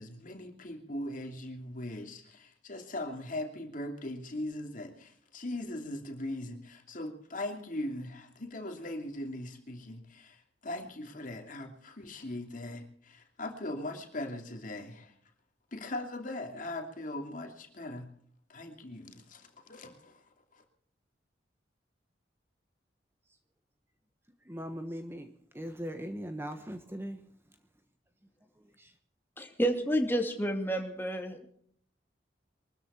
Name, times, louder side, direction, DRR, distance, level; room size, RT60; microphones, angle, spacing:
voice 1, 0.0-15.1 15.7-18.1 18.5-20.2 20.5-20.6, left 1 dB, 50° left, 4 dB, 2.8 m, -40 dB
voice 2, 24.4-27.3 28.5-29.0, equal, 15° right, 7 dB, 1.2 m, -40 dB
voice 3, 29.4-31.5, equal, 10° left, 3 dB, 2.4 m, -30 dB
23.0 x 13.5 x 4.4 m, 0.63 s
head